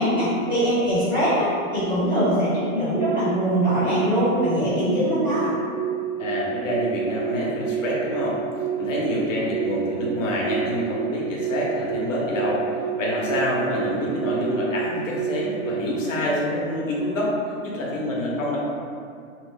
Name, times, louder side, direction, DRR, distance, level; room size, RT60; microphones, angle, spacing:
voice 1, 0.0-5.5, equal, 15° right, -16 dB, 0.5 m, -22 dB
sound 1, 2.9-3.4 3.9-4.4 4.8-5.3 5.8-6.2 6.7-7.2 7.6-8.1 8.6-9.1 9.5-10.0 10.5-10.9 11.4-11.9 12.3-12.8 13.3-13.8 14.2-14.7 15.1-15.6, right 10 dB, 70° right, 0.6 m, -28 dB
voice 2, 6.2-8.4 8.8-12.6 13.0-17.3 17.6-18.6, left 1 dB, 65° left, -4 dB, 0.8 m, -26 dB
2.9 x 2.1 x 3.2 m, 2.3 s
hypercardioid pair, 180°, 42 cm